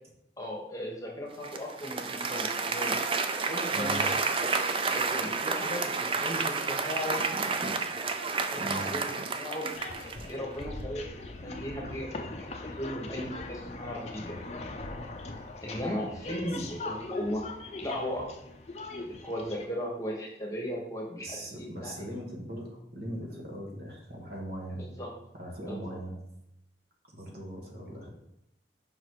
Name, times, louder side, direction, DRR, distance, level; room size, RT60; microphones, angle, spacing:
voice 1, 0.4-3.0 3.4-4.1 4.8-7.2 8.7-9.0 9.4-9.7 10.2-11.2 11.4-14.4 15.6-17.4 17.8-18.3 19.0-21.9 25.0-25.1 25.7-25.8, equal, 20° left, -2 dB, 1.2 m, -36 dB
Applause, 1.4-10.4, right 4 dB, 30° right, 0.4 m, -30 dB
voice 2, 3.7-4.1 7.9-8.0 8.6-8.9 21.2-24.9 25.3-26.2 27.1-28.1, right 1 dB, 55° right, -1 dB, 1.4 m, -39 dB
sound 1, 9.7-19.6, left 2 dB, 35° left, 0.5 m, -41 dB
5.4 x 4.0 x 4.7 m, 0.84 s
head